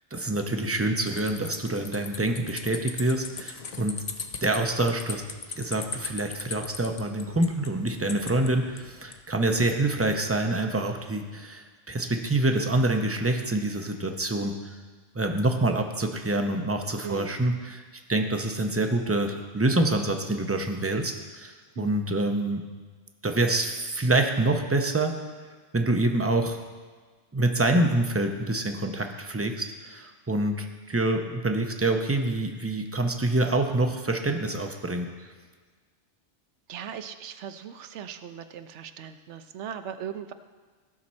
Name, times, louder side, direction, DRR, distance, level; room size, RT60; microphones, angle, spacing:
voice 1, 0.1-4.0 4.4-5.2 5.6-14.8 15.1-17.8 18.1-22.6 23.2-25.1 25.7-26.6 27.3-35.3, right 2 dB, 15° right, 4 dB, 0.5 m, -26 dB
sound 1, 1.1-9.2, left 5 dB, 45° left, 0.5 m, -39 dB
voice 2, 17.0-17.3 21.8-22.0 36.7-40.3, right 8 dB, 75° right, 10 dB, 0.9 m, -38 dB
15.5 x 5.9 x 4.3 m, 1.5 s
omnidirectional pair, 1.2 m